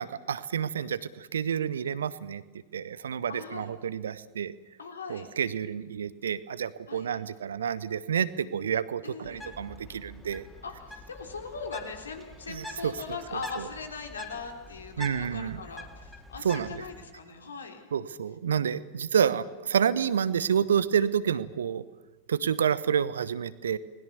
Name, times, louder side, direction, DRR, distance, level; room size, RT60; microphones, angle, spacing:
voice 1, 0.0-2.4 2.7-4.5 5.1-10.4 12.5-12.9 13.6-13.7 15.0-15.6 16.4-16.7 17.9-21.8 22.3-23.8, right 8 dB, 65° right, 17 dB, 1.0 m, -29 dB
voice 2, 3.3-3.7 4.8-5.3 6.9-7.1 9.0-9.6 10.6-17.8, left 4 dB, 70° left, 4 dB, 3.5 m, -40 dB
Bird, 9.2-17.0, left 2 dB, 10° left, 3.5 m, -45 dB
30.0 x 20.5 x 7.0 m, 1.2 s
figure-of-eight pair, 90°, 0 cm